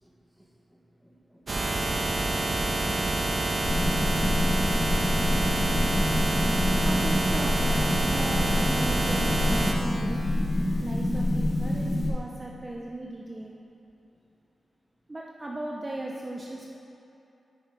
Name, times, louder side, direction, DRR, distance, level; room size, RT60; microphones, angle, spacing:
voice 1, 0.0-2.9, equal, ahead, -2 dB, 1.4 m, -61 dB
sound 1, 1.5-9.7, right 2 dB, 45° right, 1.0 m, -27 dB
voice 2, 2.8-3.2 6.8-10.2 10.8-13.6 15.1-16.7, right 1 dB, 30° right, -2 dB, 0.7 m, -37 dB
sound 2, 3.6-12.1, left 1 dB, 45° left, 1.5 m, -26 dB
8.6 x 5.7 x 4.8 m, 2.9 s
cardioid pair, 70°, 0 cm